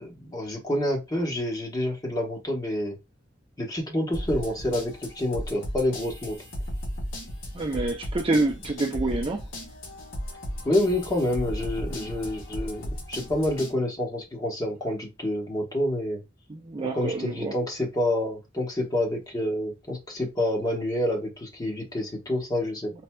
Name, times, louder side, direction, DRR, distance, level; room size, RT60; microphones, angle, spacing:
voice 1, 0.0-2.9 3.6-6.4 10.6-16.2 16.8-22.9, left 1 dB, 20° left, 1.0 m, -28 dB
sound 1, 4.1-13.7, equal, 90° left, 1.6 m, -35 dB
voice 2, 7.5-9.4 16.5-17.5, right 2 dB, 25° right, 0.5 m, -27 dB
4.2 x 2.6 x 2.2 m
head